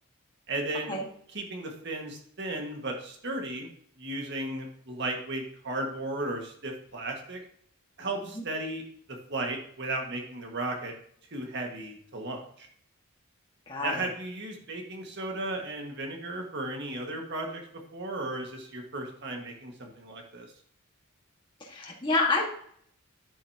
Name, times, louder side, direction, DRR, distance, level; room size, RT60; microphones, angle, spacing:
voice 1, 0.5-1.0 1.3-3.7 4.0-7.4 8.0-8.8 9.1-11.0 11.3-12.7 13.8-20.5, right 2 dB, 55° right, 2 dB, 1.8 m, -35 dB
voice 2, 13.7-14.1 21.6-22.5, left 3 dB, 20° left, -3 dB, 1.7 m, -28 dB
10.5 x 8.3 x 2.9 m, 0.62 s
head